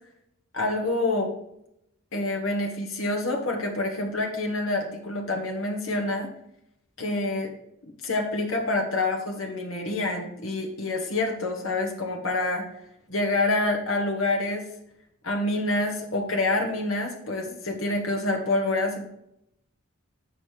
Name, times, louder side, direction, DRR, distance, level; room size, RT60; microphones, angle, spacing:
voice 1, 0.5-1.3 2.1-6.3 7.0-7.5 8.0-12.6 13.1-14.7 15.2-19.1, left 2 dB, 65° left, 1 dB, 1.2 m, -27 dB
7.3 x 5.1 x 4.8 m, 0.77 s
head